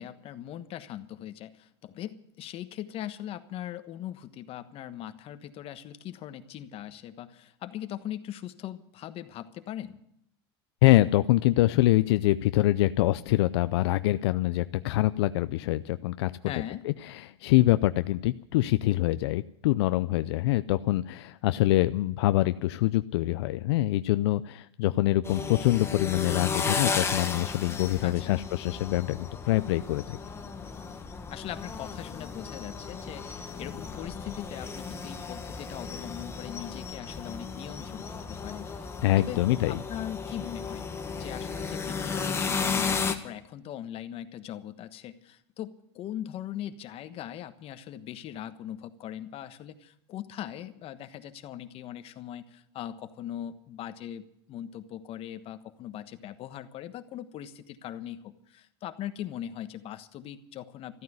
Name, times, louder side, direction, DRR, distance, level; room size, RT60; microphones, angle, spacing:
voice 1, 0.0-10.0 16.5-16.8 28.0-28.4 31.3-38.9 39.2-40.9 41.2-61.0, left 11 dB, 45° left, 10 dB, 1.3 m, -40 dB
voice 2, 10.8-16.3 16.8-30.2 39.0-39.8, left 17 dB, 75° left, 12 dB, 0.5 m, -25 dB
sound 1, 25.2-43.1, left 5 dB, 20° left, 1.5 m, -34 dB
14.0 x 9.4 x 9.5 m, 0.73 s
supercardioid pair, 110°, 14 cm